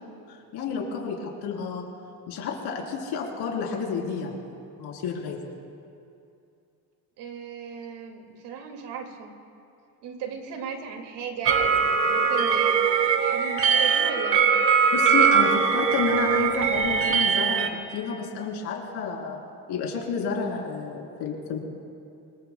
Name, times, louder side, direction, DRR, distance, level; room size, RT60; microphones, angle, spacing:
voice 1, 0.3-1.8 2.3-5.4 14.9-19.4 19.7-21.6, left 5 dB, 70° left, -1 dB, 3.7 m, -30 dB
voice 2, 7.2-9.3 10.0-15.2, right 6 dB, 75° right, 4 dB, 2.3 m, -37 dB
sound 1, 11.5-17.7, right 6 dB, 30° right, 1.0 m, -21 dB
26.0 x 23.0 x 2.2 m, 2.6 s
cardioid pair, 160°, 41 cm